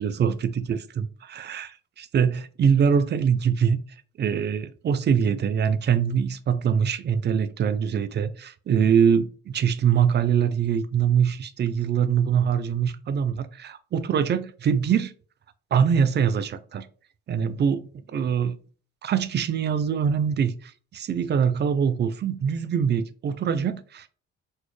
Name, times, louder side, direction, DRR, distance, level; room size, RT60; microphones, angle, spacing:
voice 1, 0.0-3.8 4.2-15.1 15.7-16.9 17.3-18.6 19.0-24.1, right 7 dB, 35° right, 0.4 m, -23 dB
4.1 x 2.1 x 3.2 m
cardioid pair, 90°, 30 cm